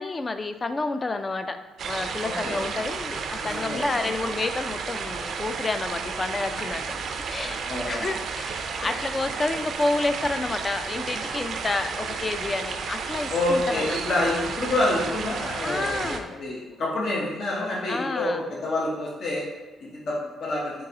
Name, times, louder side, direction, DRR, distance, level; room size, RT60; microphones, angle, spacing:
voice 1, 0.0-6.8 7.3-14.4 15.2-16.3 17.9-18.5, left 3 dB, 30° left, 9 dB, 0.3 m, -30 dB
sound 1, 1.8-16.2, right 5 dB, 65° right, 0.4 m, -32 dB
voice 2, 2.2-2.8 3.4-4.1 7.4-8.1 13.3-19.4 19.8-20.7, left 2 dB, 60° left, -3 dB, 0.8 m, -28 dB
3.9 x 3.8 x 2.8 m, 1.2 s
cardioid pair, 90°, 0 cm